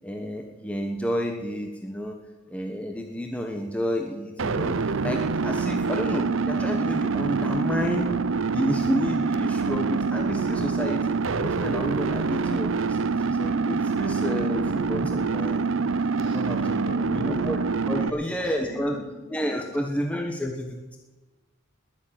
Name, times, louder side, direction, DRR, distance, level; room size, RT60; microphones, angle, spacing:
voice 1, 0.0-2.2 2.5-8.1 8.5-13.0 13.3-15.9 16.2-17.6 17.9-18.9 19.3-21.0, equal, 5° left, 2 dB, 1.2 m, -30 dB
sound 1, 4.4-18.1, right 4 dB, 80° right, 0.7 m, -26 dB
voice 2, 16.2-19.8, equal, 70° left, -1 dB, 6.4 m, -42 dB
20.0 x 7.4 x 8.9 m, 1.2 s
head